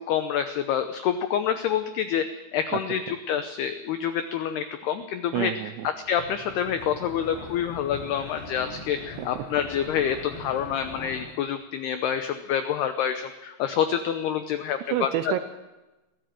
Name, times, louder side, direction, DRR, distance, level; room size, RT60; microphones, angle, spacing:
voice 1, 0.0-5.5 6.1-15.4, left 9 dB, 85° left, 9 dB, 2.3 m, -27 dB
voice 2, 5.3-5.9 9.2-9.3 14.9-15.4, right 12 dB, 80° right, 10 dB, 2.7 m, -28 dB
sound 1, 5.9-11.3, left 2 dB, 50° left, 7.5 m, -41 dB
23.0 x 15.5 x 7.6 m, 1.1 s
omnidirectional pair, 5.8 m